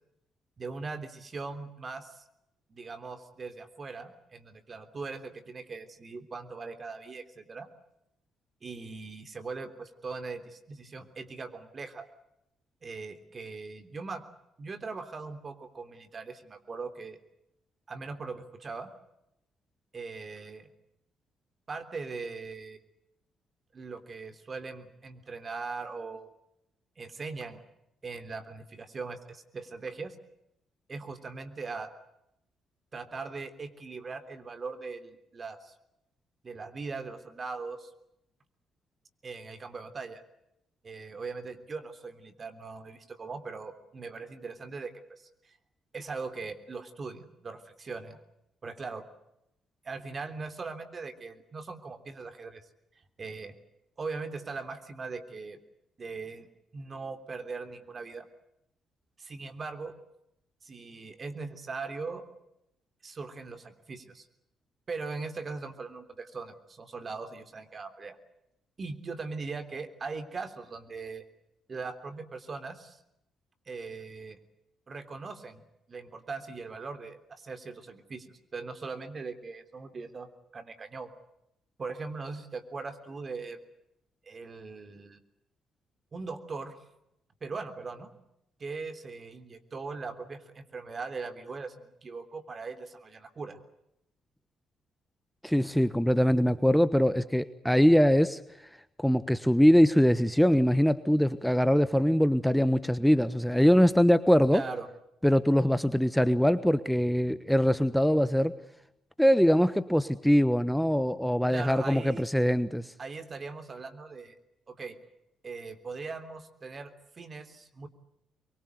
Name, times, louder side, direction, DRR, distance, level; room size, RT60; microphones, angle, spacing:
voice 1, 0.6-2.2 2.7-7.7 8.6-12.1 12.8-14.2 14.6-17.2 17.9-18.9 19.9-20.7 21.7-22.8 23.7-26.3 27.0-27.6 28.0-30.1 30.9-31.9 32.9-35.7 36.4-37.9 39.2-40.2 40.8-45.3 45.9-48.2 48.6-49.0 49.8-52.6 53.2-53.5 54.0-55.6 56.0-56.5 56.7-58.3 59.2-59.9 60.6-62.3 63.0-64.3 64.9-68.2 68.8-71.2 71.7-73.0 73.7-74.4 74.9-81.1 81.8-83.6 84.2-85.2 86.1-86.8 87.4-88.1 88.6-93.6 104.5-104.9 111.5-112.2 113.0-114.3 114.7-115.0 115.4-117.9, right 4 dB, 45° right, 9 dB, 3.3 m, -40 dB
voice 2, 95.4-98.4 99.0-104.6 105.2-108.5 109.2-112.9, equal, 5° left, 13 dB, 1.2 m, -23 dB
24.5 x 23.0 x 8.0 m, 0.84 s
hypercardioid pair, 50°, 0 cm